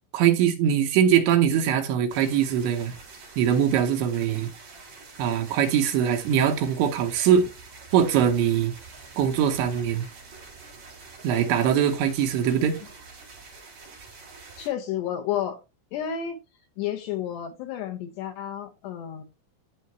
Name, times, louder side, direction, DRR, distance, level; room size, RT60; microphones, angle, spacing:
voice 1, 0.1-2.9 3.4-4.5 5.2-7.5 7.9-8.7 9.2-10.1 11.2-12.8, right 9 dB, 75° right, 3.2 m, -22 dB
sound 1, 2.1-14.7, right 4 dB, 35° right, 5.0 m, -46 dB
voice 2, 14.6-15.6 15.9-16.4 16.8-19.2, left 10 dB, 70° left, 2.9 m, -31 dB
12.5 x 6.4 x 3.1 m
omnidirectional pair, 5.8 m